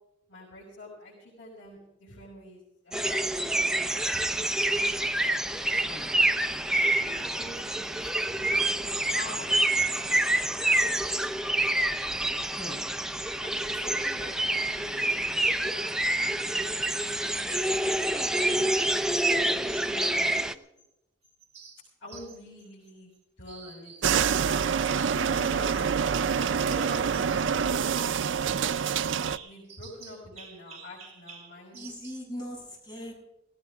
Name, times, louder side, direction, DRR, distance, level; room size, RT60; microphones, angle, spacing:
voice 1, 0.3-4.7 6.7-10.2 13.4-16.7 16.9-18.5 19.4-19.6 19.9-20.5 22.0-23.1 23.4-24.4 25.1-25.8 26.2-31.8, left 1 dB, 75° left, -6 dB, 6.0 m, -46 dB
sound 1, 2.9-20.5, right 1 dB, 5° right, 0.5 m, -27 dB
sound 2, 17.4-17.8 18.6-19.1 19.7-20.9 21.2-23.2 23.5-24.8 25.3-25.9 26.2-32.3, right 6 dB, 35° right, 3.3 m, -50 dB
sound 3, 24.0-29.4, right 7 dB, 80° right, 0.5 m, -26 dB
voice 2, 31.7-33.1, equal, 25° left, -3 dB, 7.7 m, -40 dB
18.0 x 17.0 x 3.6 m, 0.87 s
head